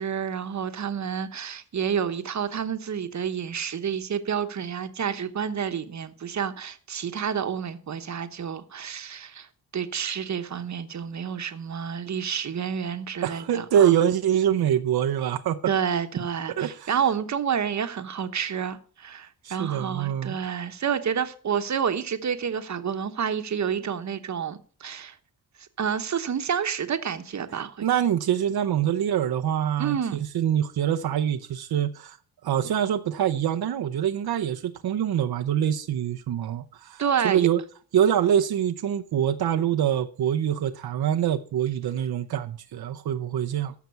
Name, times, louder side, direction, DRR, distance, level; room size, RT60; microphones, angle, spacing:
voice 1, 0.0-9.5 9.7-14.0 15.7-25.1 25.8-27.8 29.8-30.2 37.0-37.5, right 7 dB, 50° right, 1.1 m, -29 dB
voice 2, 13.2-15.6 16.6-16.9 19.4-20.3 27.8-32.2 32.4-37.6 37.9-43.7, right 10 dB, 80° right, 0.8 m, -25 dB
14.5 x 6.0 x 6.8 m
wide cardioid pair, 130°, 37 cm